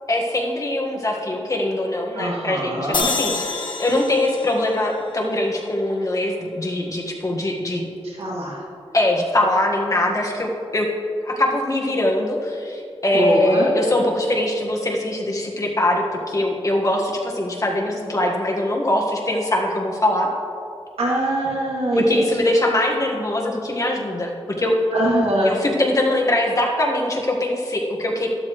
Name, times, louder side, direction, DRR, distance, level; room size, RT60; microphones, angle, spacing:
voice 1, 0.1-7.9 8.9-10.9 11.2-20.3 21.9-24.7 25.4-28.3, left 1 dB, 35° left, 0 dB, 1.6 m, -22 dB
voice 2, 2.1-3.1 8.0-8.6 13.1-13.7 21.0-22.2 24.9-25.5, right 1 dB, 75° right, -3 dB, 2.5 m, -22 dB
sound 1, 2.9-6.2, left 4 dB, 50° left, 1.1 m, -29 dB
12.5 x 12.5 x 3.2 m, 2.5 s
wide cardioid pair, 100°, 10 cm